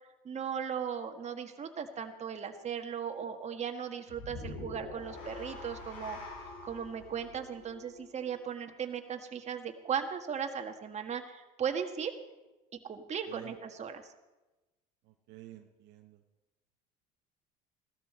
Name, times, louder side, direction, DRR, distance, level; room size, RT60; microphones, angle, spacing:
voice 1, 0.2-6.2 6.6-12.2 12.9-14.1, right 7 dB, 35° right, 5 dB, 1.6 m, -37 dB
sound 1, 4.1-8.4, left 3 dB, 80° left, 5.4 m, -45 dB
voice 2, 15.1-16.2, right 14 dB, 65° right, 5 dB, 1.2 m, -51 dB
16.5 x 13.0 x 4.3 m, 1.1 s
supercardioid pair, 80°, 19 cm